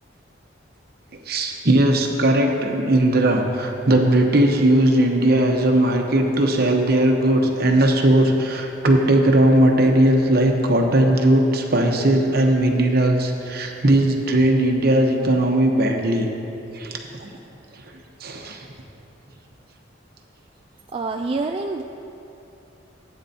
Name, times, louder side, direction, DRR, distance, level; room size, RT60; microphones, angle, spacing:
voice 1, 1.1-16.3 16.7-17.3 17.7-17.8 18.2-18.7, right 1 dB, 55° right, 2 dB, 1.0 m, -18 dB
voice 2, 20.9-21.8, right 3 dB, 30° right, 3 dB, 0.3 m, -26 dB
15.5 x 8.9 x 2.8 m, 2.8 s
head